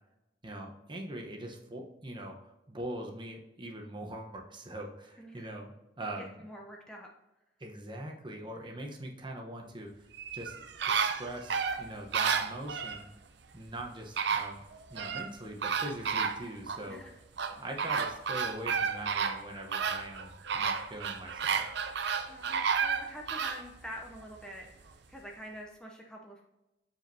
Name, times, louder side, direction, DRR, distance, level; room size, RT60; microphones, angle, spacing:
voice 1, 0.4-6.5 7.6-10.1 10.3-10.6 10.9-13.1 13.5-14.6 14.9-17.0 17.6-21.6, right 1 dB, 25° right, 1 dB, 0.9 m, -42 dB
voice 2, 5.2-5.5 6.2-7.1 16.9-17.1 22.3-26.4, equal, 5° left, -1 dB, 0.7 m, -46 dB
sound 1, 10.1-13.0 13.8-13.9 14.2-15.3 15.6-16.8 17.4-23.6 24.1-24.2, right 6 dB, 65° right, 0.6 m, -31 dB
7.3 x 5.1 x 2.7 m, 0.96 s
head